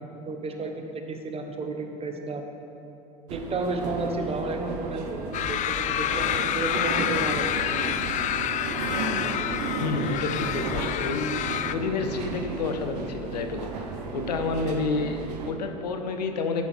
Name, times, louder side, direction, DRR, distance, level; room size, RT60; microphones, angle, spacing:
voice 1, 0.3-2.4 3.3-7.7, right 2 dB, 30° right, 4 dB, 1.1 m, -32 dB
sound 1, 3.3-15.5, right 4 dB, 75° right, 0.9 m, -34 dB
sound 2, 5.3-11.7, left 10 dB, 40° left, 0.4 m, -28 dB
voice 2, 9.8-16.7, left 4 dB, 90° left, 6 dB, 0.7 m, -30 dB
10.5 x 6.9 x 4.5 m, 3.0 s
hypercardioid pair, 80°, 20 cm